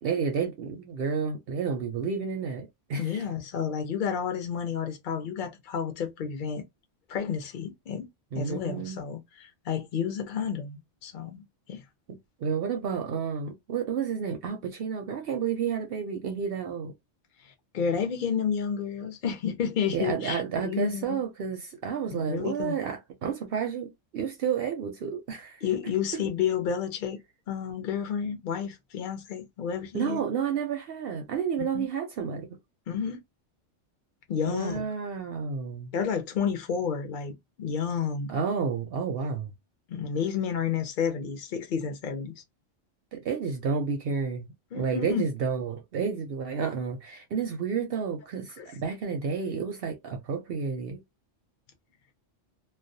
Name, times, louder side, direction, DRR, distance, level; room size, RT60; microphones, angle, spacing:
voice 1, 0.0-3.2 8.3-9.0 12.4-16.9 19.9-25.6 29.9-32.5 34.5-35.9 38.3-39.5 43.1-44.5 44.7-51.0, right 6 dB, 65° right, 0.6 m, -31 dB
voice 2, 3.0-6.6 7.1-8.1 8.3-11.4 11.7-11.8 17.4-21.2 22.1-22.8 25.6-27.2 27.5-30.2 31.6-31.9 32.9-33.2 34.3-34.8 35.9-38.3 39.9-42.4 44.7-45.2 48.6-48.7, left 7 dB, 55° left, 0.6 m, -31 dB
2.3 x 2.1 x 2.6 m
omnidirectional pair, 1.3 m